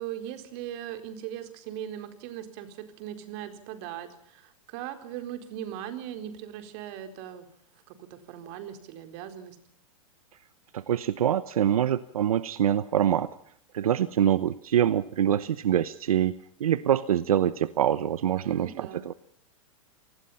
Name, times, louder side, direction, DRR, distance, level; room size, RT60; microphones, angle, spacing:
voice 1, 0.0-7.5 7.9-9.6 18.4-19.1, right 11 dB, 50° right, 8 dB, 4.2 m, -39 dB
voice 2, 10.7-13.3 13.7-19.1, right 10 dB, 90° right, 15 dB, 1.0 m, -25 dB
28.0 x 20.0 x 5.7 m, 0.67 s
hypercardioid pair, 135°, 18 cm